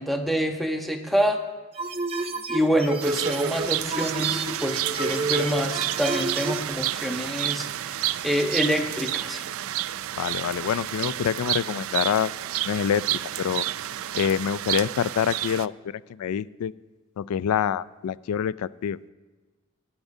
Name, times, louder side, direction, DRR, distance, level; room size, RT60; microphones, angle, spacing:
voice 1, 0.0-1.4 2.5-8.0 8.2-9.4, equal, ahead, 3 dB, 1.0 m, -26 dB
sound 1, 1.7-6.7, right 2 dB, 25° right, 0.7 m, -30 dB
sound 2, 3.0-15.7, right 13 dB, 65° right, 0.3 m, -30 dB
voice 2, 10.2-12.3 12.6-13.6 14.1-16.7 17.2-19.0, left 8 dB, 85° left, 19 dB, 0.3 m, -26 dB
20.0 x 11.5 x 2.7 m, 1.2 s
head